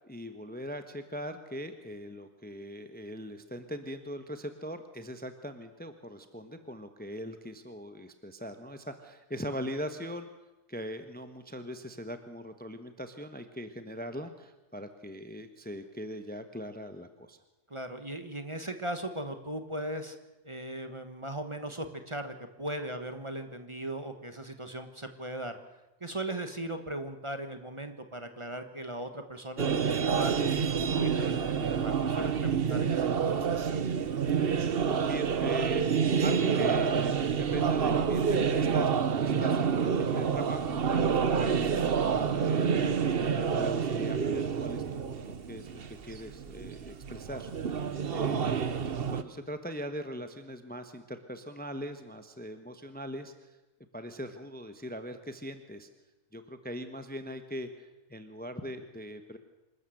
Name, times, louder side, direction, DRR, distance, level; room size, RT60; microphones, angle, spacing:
voice 1, 0.0-10.3 10.7-17.4 35.0-35.9 36.2-48.8 49.1-53.6 53.9-55.9 56.3-59.4, equal, 10° left, 8 dB, 1.1 m, -41 dB
voice 2, 17.7-20.2 20.4-25.5 26.0-33.3, right 1 dB, 25° right, 7 dB, 1.4 m, -38 dB
sound 1, 29.6-49.2, right 6 dB, 50° right, 1.1 m, -28 dB
26.0 x 13.5 x 7.9 m, 1.0 s
omnidirectional pair, 1.3 m